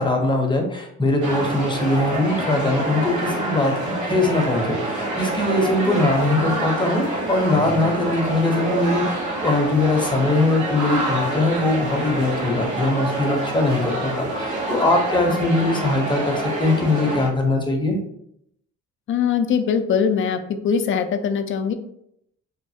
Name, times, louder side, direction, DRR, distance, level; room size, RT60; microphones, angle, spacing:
voice 1, 0.0-18.0, left 2 dB, 15° left, 2 dB, 0.7 m, -21 dB
sound 1, 1.2-17.3, right 1 dB, 80° right, 1.0 m, -27 dB
voice 2, 15.3-15.8 19.1-21.7, left 7 dB, 45° left, 8 dB, 0.4 m, -22 dB
3.1 x 2.2 x 2.7 m, 0.73 s
cardioid pair, 90°, 30 cm